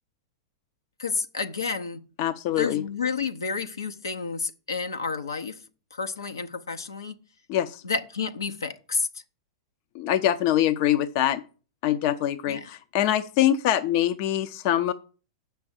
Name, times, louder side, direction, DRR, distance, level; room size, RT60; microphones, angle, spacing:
voice 1, 1.0-2.0 2.6-5.6 5.9-7.2 7.8-9.1 12.5-12.7, left 5 dB, 75° left, 0.8 m, -30 dB
voice 2, 2.2-2.8 7.5-7.8 9.9-11.4 11.8-14.9, left 12 dB, 45° left, 0.6 m, -24 dB
7.7 x 5.7 x 7.5 m
figure-of-eight pair, 95°, 2 cm